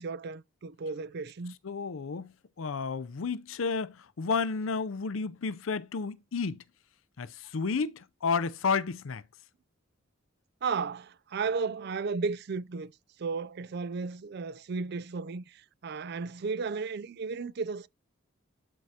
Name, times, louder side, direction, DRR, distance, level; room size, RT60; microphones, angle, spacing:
voice 1, 0.0-1.6 10.6-12.9 13.2-17.9, right 4 dB, 50° right, 0.4 m, -34 dB
voice 2, 1.6-2.3 2.6-6.6 7.2-9.2, left 5 dB, 75° left, 0.5 m, -31 dB
12.0 x 4.6 x 2.8 m
head